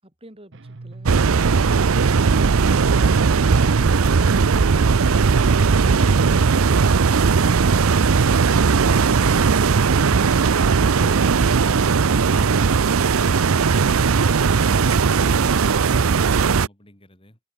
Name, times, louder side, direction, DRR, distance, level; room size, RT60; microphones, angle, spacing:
voice 1, 0.0-3.8, right 1 dB, 25° right, 5.8 m, -47 dB
sound 1, 0.5-16.5, right 2 dB, 60° right, 0.9 m, -40 dB
sound 2, 1.1-16.7, right 5 dB, 75° right, 0.6 m, -17 dB
sound 3, 2.7-14.7, left 1 dB, 45° left, 6.4 m, -49 dB
voice 2, 14.4-17.4, left 1 dB, 25° left, 4.7 m, -49 dB
head